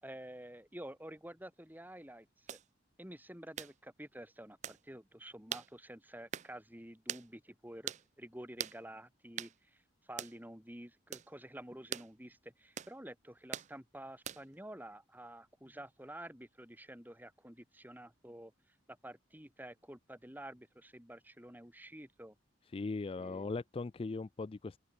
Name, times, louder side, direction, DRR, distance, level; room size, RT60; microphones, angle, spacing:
voice 1, 0.0-2.6 3.0-18.5 18.9-22.3 23.2-23.4, right 1 dB, 10° right, 6.3 m, -50 dB
sound 1, 2.5-2.6 3.6-3.7 4.6-4.8 5.5-5.7 6.3-6.5 7.1-7.3 7.9-8.0 8.6-8.8 9.4-9.5 10.2-10.4 11.1-11.3 11.9-12.1 12.8-12.9 13.5-13.7 14.2-14.5, right 9 dB, 40° right, 0.4 m, -41 dB
voice 2, 22.7-24.8, left 3 dB, 30° left, 0.3 m, -39 dB
head